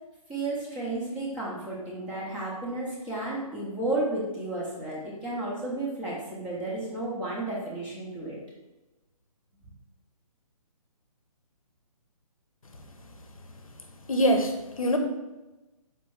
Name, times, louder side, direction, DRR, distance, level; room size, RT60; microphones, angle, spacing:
voice 1, 0.3-8.4, right 2 dB, 5° right, -7 dB, 0.5 m, -32 dB
voice 2, 14.1-15.0, equal, 60° left, 5 dB, 0.6 m, -24 dB
4.2 x 2.9 x 3.5 m, 1.1 s
figure-of-eight pair, 140°, 20 cm